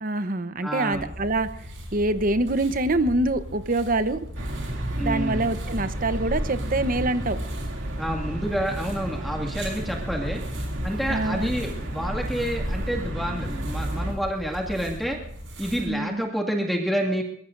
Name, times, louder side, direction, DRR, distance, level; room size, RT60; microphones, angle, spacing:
voice 1, 0.0-4.3 4.9-7.4 11.1-11.5 15.9-16.2, right 2 dB, 45° right, 11 dB, 1.0 m, -25 dB
voice 2, 0.6-1.1 5.0-5.5 8.0-10.4 10.8-15.2 15.6-17.2, equal, ahead, 0 dB, 2.1 m, -28 dB
sound 1, 0.9-15.9, equal, 70° right, 6.2 m, -38 dB
sound 2, 4.3-14.1, right 1 dB, 85° right, 2.7 m, -31 dB
22.5 x 21.5 x 2.6 m, 0.71 s
head